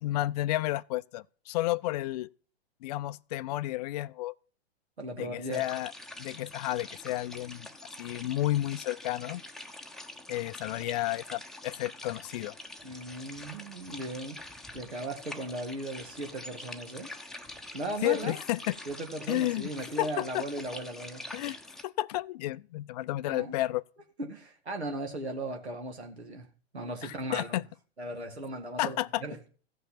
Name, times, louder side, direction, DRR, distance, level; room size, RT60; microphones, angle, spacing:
voice 1, 0.0-2.3 2.8-4.3 5.2-5.9 6.2-7.7 8.0-9.4 10.3-12.5 18.0-18.7 19.3-19.7 20.0-20.4 21.3-21.6 21.8-23.8 27.0-27.7 28.8-29.2, left 16 dB, 40° left, 0.4 m, -31 dB
voice 2, 5.0-5.6 12.8-14.4 14.7-17.1 17.7-18.4 18.9-21.2 23.3-23.5 24.2-26.5 26.7-27.6 28.0-29.4, right 1 dB, 85° right, 2.2 m, -37 dB
sound 1, 5.5-21.8, left 1 dB, ahead, 0.8 m, -45 dB
15.5 x 5.8 x 5.7 m
figure-of-eight pair, 110°, 32 cm